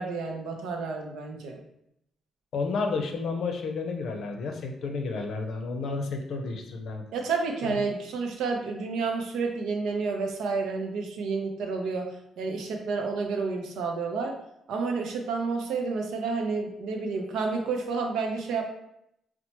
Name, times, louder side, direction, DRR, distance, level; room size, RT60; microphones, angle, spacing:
voice 1, 0.0-1.6 7.1-14.4 14.7-18.6, right 4 dB, 85° right, 3 dB, 0.5 m, -30 dB
voice 2, 2.5-7.0 7.7-7.8, left 4 dB, 70° left, 4 dB, 0.5 m, -31 dB
4.2 x 2.1 x 2.9 m, 0.78 s
cardioid pair, 90°, 0 cm